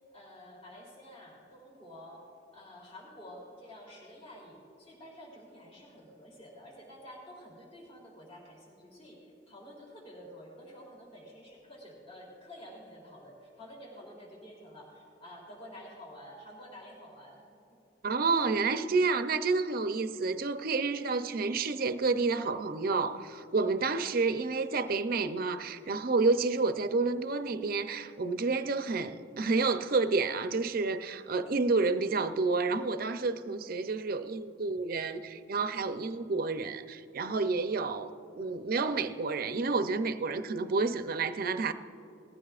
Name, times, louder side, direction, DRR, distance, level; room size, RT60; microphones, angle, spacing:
voice 1, 0.1-17.6, equal, 35° left, 3.1 m, -50 dB
voice 2, 18.0-41.7, right 4 dB, 50° right, 0.6 m, -29 dB
19.5 x 15.0 x 2.4 m
head